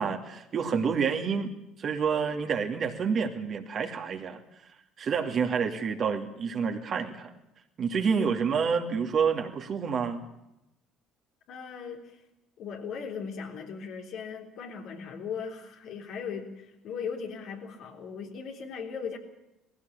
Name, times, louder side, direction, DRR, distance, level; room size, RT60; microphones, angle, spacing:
voice 1, 0.0-4.4 5.0-7.3 7.8-10.2, right 6 dB, 45° right, 4 dB, 2.7 m, -28 dB
voice 2, 11.5-12.2 12.6-19.2, left 6 dB, 60° left, 2 dB, 3.7 m, -38 dB
19.5 x 16.0 x 8.6 m, 0.88 s
hypercardioid pair, 60°, 0 cm